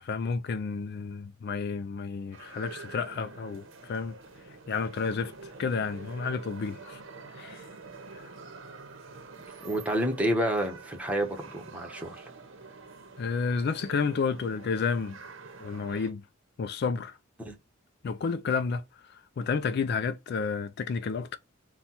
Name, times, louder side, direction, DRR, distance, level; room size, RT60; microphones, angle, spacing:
voice 1, 0.0-4.1 4.7-5.3 5.6-7.0 7.3-7.6 8.1-8.2 13.2-15.2 15.6-16.2 16.6-17.2 18.0-18.8 19.1-21.4, left 5 dB, 55° left, 0.3 m, -31 dB
sound 1, 2.3-16.1, right 4 dB, 70° right, 0.9 m, -47 dB
voice 2, 9.6-12.3 17.4-17.6, equal, 5° right, 1.0 m, -29 dB
4.2 x 2.2 x 4.2 m
head